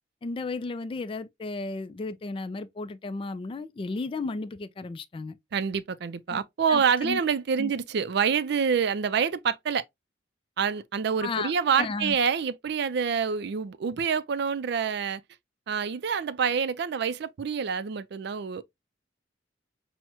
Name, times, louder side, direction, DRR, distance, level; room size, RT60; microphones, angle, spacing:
voice 1, 0.2-5.4 6.3-6.4 6.7-7.2 7.6-7.7 11.2-12.2, left 3 dB, 30° left, 0.3 m, -34 dB
voice 2, 5.5-9.8 10.6-15.2 15.7-18.6, right 6 dB, 65° right, 0.4 m, -27 dB
5.8 x 2.1 x 2.9 m
head